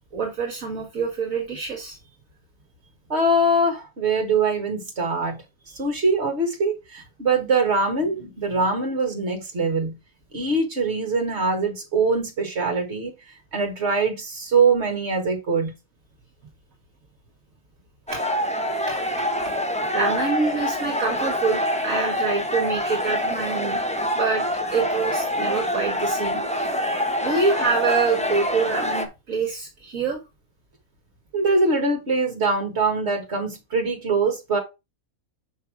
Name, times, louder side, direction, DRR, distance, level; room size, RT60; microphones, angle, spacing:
voice 1, 0.1-2.0 18.1-18.2 18.9-19.0 19.4-19.5 19.9-23.8 24.1-24.4 24.7-26.4 27.2-30.2, right 4 dB, 65° right, 1.8 m, -26 dB
voice 2, 3.1-5.4 5.8-10.0 10.3-13.1 13.5-15.7 31.3-34.6, right 3 dB, 45° right, 2.1 m, -23 dB
sound 1, 18.1-29.1, equal, 5° left, 0.8 m, -26 dB
5.6 x 5.5 x 4.8 m
omnidirectional pair, 1.6 m